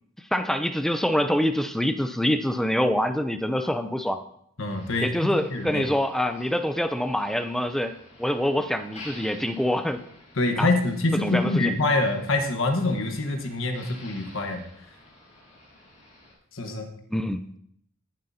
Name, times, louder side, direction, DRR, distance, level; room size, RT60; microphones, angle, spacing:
voice 1, 0.3-4.2 5.0-7.9 8.2-10.0 10.6-10.7 11.2-11.8 17.1-17.4, equal, ahead, 9 dB, 0.5 m, -25 dB
voice 2, 4.6-5.9 10.4-14.6 16.5-16.9, left 2 dB, 75° left, 5 dB, 1.3 m, -25 dB
Motor vehicle (road), 4.7-16.3, left 2 dB, 30° left, 5.2 m, -50 dB
18.5 x 7.6 x 2.8 m, 0.68 s
head